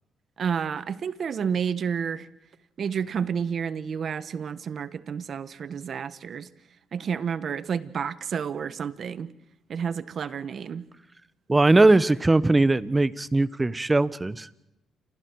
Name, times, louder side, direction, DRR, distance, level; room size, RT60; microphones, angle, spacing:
voice 1, 0.4-2.3 2.8-6.5 6.9-9.3 9.7-10.9, right 7 dB, 55° right, 1.3 m, -30 dB
voice 2, 11.5-14.5, right 2 dB, 20° right, 1.0 m, -20 dB
29.0 x 27.0 x 4.7 m
cardioid pair, 90°, 0 cm